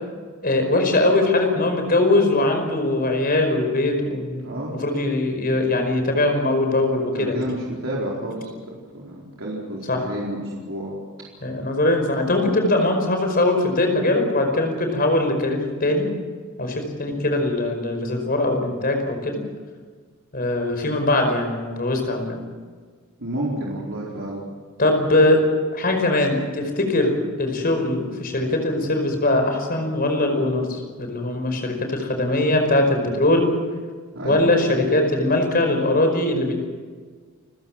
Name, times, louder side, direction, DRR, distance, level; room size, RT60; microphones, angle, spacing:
voice 1, 0.4-7.4 9.9-10.0 11.4-16.1 16.6-19.4 20.3-22.4 24.8-25.4 25.7-33.5 34.2-36.5, left 2 dB, 40° left, 4 dB, 5.1 m, -21 dB
voice 2, 7.0-8.5 8.9-11.0 23.2-24.4 34.1-34.5, right 1 dB, 60° right, -4 dB, 4.5 m, -30 dB
29.5 x 15.5 x 7.5 m, 1.5 s
head